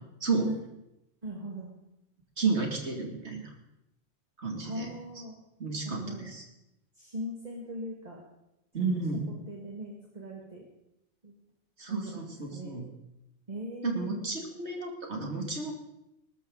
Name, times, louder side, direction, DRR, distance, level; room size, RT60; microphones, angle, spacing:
voice 1, 1.2-1.7 4.6-5.4 5.8-6.4 6.9-8.2 8.8-8.9 9.3-10.6 11.2-11.3 11.9-12.7 13.5-14.2, equal, 30° right, -1 dB, 2.1 m, -40 dB
voice 2, 2.4-3.5 4.4-4.9 5.6-6.4 8.7-9.2 11.8-12.9 13.8-15.7, right 4 dB, 55° right, 1 dB, 2.9 m, -32 dB
18.5 x 13.5 x 4.0 m, 0.85 s
omnidirectional pair, 1.4 m